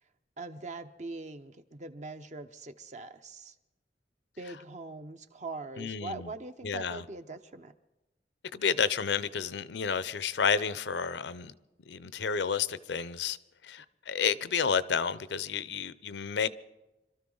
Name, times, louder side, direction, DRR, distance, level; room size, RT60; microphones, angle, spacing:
voice 1, 0.4-3.5 4.4-7.7, right 3 dB, 40° right, 0.7 m, -42 dB
voice 2, 5.8-6.3 6.6-7.0 8.5-11.5 11.9-13.4 13.6-16.5, left 6 dB, 75° left, 0.6 m, -30 dB
26.0 x 13.0 x 3.9 m
head